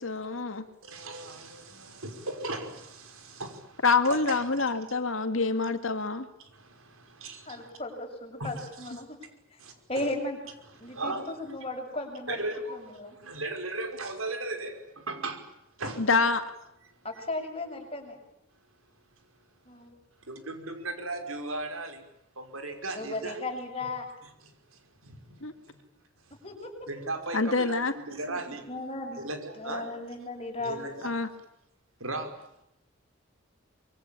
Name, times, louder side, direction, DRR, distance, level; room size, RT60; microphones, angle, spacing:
voice 1, 0.0-0.6 3.8-6.3 16.0-16.4 25.4-25.5 27.3-27.9 31.0-31.3, left 4 dB, 70° left, 8 dB, 2.2 m, -26 dB
voice 2, 0.8-4.7 5.6-5.7 6.4-7.7 8.4-8.9 9.6-9.7 10.8-11.2 12.3-15.5 15.8-16.1 16.8-17.2 20.2-22.0 22.4-23.4 24.4-25.2 25.7-25.8 26.9-28.7 29.2-29.9 30.6-31.4 32.0-32.5, right 2 dB, 80° right, 6 dB, 5.6 m, -37 dB
voice 3, 7.5-9.2 9.5-9.6 9.9-10.4 10.8-12.4 12.7-13.2 17.0-18.2 19.7-20.0 22.9-24.1 26.4-26.7 28.3-29.2 29.6-30.8, left 2 dB, 30° left, 3 dB, 7.0 m, -36 dB
25.5 x 23.5 x 9.0 m, 0.79 s
head